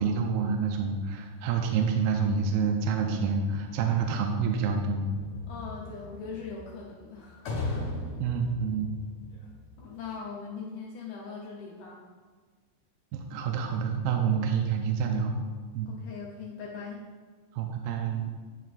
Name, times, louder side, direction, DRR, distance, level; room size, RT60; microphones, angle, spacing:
voice 1, 0.0-5.1 8.2-8.9 13.3-15.4 15.7-15.9 17.5-18.3, right 6 dB, 80° right, 3 dB, 2.2 m, -28 dB
sound 1, 5.1-10.2, left 2 dB, 65° left, 2.3 m, -38 dB
voice 2, 5.5-8.0 9.8-12.0 15.9-17.0, left 5 dB, 80° left, -3 dB, 1.8 m, -41 dB
11.0 x 4.6 x 2.5 m, 1.5 s
omnidirectional pair, 4.6 m